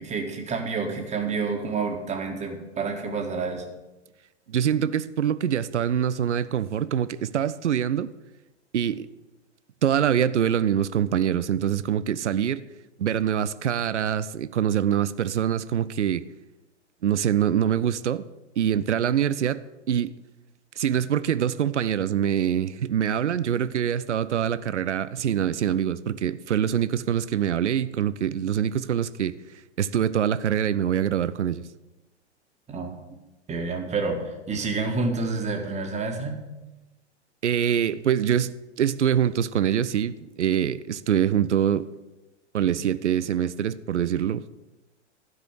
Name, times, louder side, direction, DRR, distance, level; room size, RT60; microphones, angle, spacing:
voice 1, 0.0-3.6 32.7-32.9 33.5-36.4, right 4 dB, 20° right, 1.7 m, -29 dB
voice 2, 4.5-8.1 8.7-9.1 9.8-12.6 13.0-16.3 17.0-18.2 18.6-19.6 19.9-20.1 20.8-29.3 29.8-31.6 37.4-41.9 42.5-44.5, right 9 dB, 80° right, 0.6 m, -24 dB
12.5 x 5.0 x 8.2 m
figure-of-eight pair, 105°, 35 cm